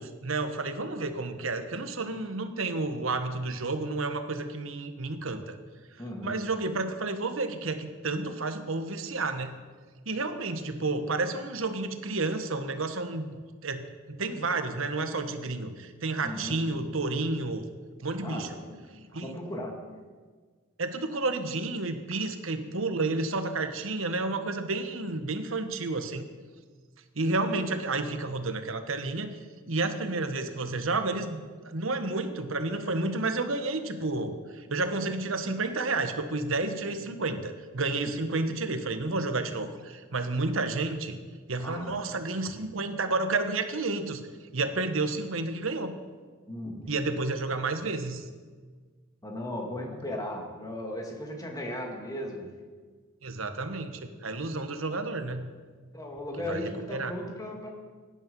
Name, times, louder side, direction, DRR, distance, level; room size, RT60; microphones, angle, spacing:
voice 1, 0.0-5.6 6.2-9.6 10.0-17.7 18.0-18.5 19.1-19.3 20.8-26.3 27.1-29.4 29.7-41.2 41.5-44.3 44.5-45.9 46.9-48.3 53.2-55.5 56.5-57.1, right 3 dB, 75° right, 8 dB, 1.3 m, -31 dB
voice 2, 6.0-6.4 16.2-16.6 18.2-18.9 19.2-19.8 41.6-42.0 46.5-47.0 49.2-52.5 55.9-57.7, left 1 dB, 20° left, 1 dB, 2.3 m, -36 dB
17.0 x 10.0 x 5.4 m, 1.5 s
head